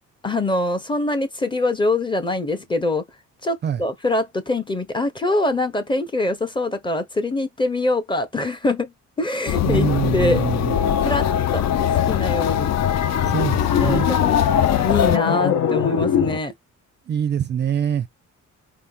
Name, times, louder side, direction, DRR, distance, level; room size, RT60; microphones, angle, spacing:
voice 1, 0.2-3.0 3.4-8.9 9.2-9.9 10.1-10.4 11.0-11.3 11.5-11.6 11.9-12.7 13.8-14.4 14.8-16.5, left 2 dB, 15° left, 0.7 m, -23 dB
sound 1, 9.5-15.2, left 12 dB, 60° left, 0.5 m, -23 dB
voice 2, 9.6-10.8 13.2-14.1 17.1-18.1, right 8 dB, 35° right, 0.4 m, -24 dB
sound 2, 9.8-16.4, left 8 dB, 80° left, 1.1 m, -23 dB
4.7 x 2.7 x 3.6 m
cardioid pair, 170°, 30 cm